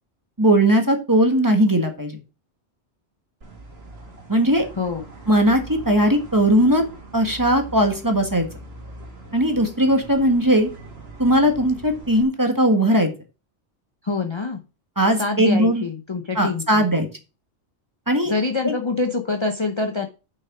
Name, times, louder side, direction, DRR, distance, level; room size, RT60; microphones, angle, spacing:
voice 1, 0.4-2.2 4.3-4.6 5.3-6.8 7.1-8.5 9.3-10.7 11.2-13.1 15.0-15.8 16.3-17.1 18.1-18.3 18.6-18.7, right 1 dB, 15° right, 4 dB, 1.5 m, -18 dB
sound 1, 3.4-12.2, right 2 dB, 60° right, 2.1 m, -41 dB
voice 2, 4.8-5.1 14.0-14.6 15.2-17.0 18.3-20.1, left 3 dB, 30° left, 5 dB, 0.7 m, -25 dB
6.4 x 5.8 x 6.0 m, 0.32 s
omnidirectional pair, 1.2 m